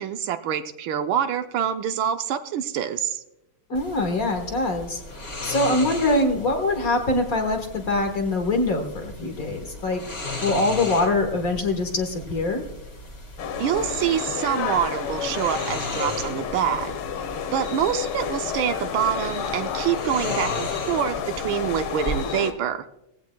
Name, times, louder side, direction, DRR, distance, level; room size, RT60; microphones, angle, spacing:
voice 1, 0.0-3.2 13.6-16.9 17.5-22.8, right 9 dB, 75° right, 9 dB, 1.4 m, -26 dB
voice 2, 3.7-5.0 5.4-10.0 10.4-12.6, left 2 dB, 45° left, 5 dB, 1.6 m, -23 dB
sound 1, 3.7-22.2, left 1 dB, 30° left, 2.0 m, -37 dB
sound 2, 13.4-22.5, left 7 dB, 85° left, 1.8 m, -30 dB
18.5 x 15.5 x 2.2 m, 0.86 s
omnidirectional pair, 2.3 m